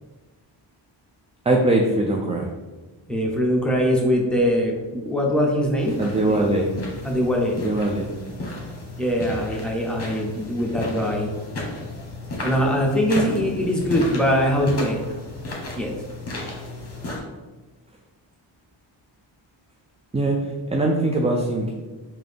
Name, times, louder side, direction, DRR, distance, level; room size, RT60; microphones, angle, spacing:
voice 1, 1.5-2.5 6.0-6.7 7.6-8.1 20.1-20.4 20.7-21.7, right 2 dB, 15° right, 0 dB, 0.3 m, -21 dB
voice 2, 3.1-6.0 6.2-6.5 7.0-7.6 9.0-11.3 12.4-15.0 15.7-15.9, equal, ahead, -2 dB, 0.8 m, -22 dB
sound 1, 5.8-17.2, left 2 dB, 30° left, 1.1 m, -34 dB
3.7 x 2.8 x 3.5 m, 1.2 s
cardioid pair, 85°, 47 cm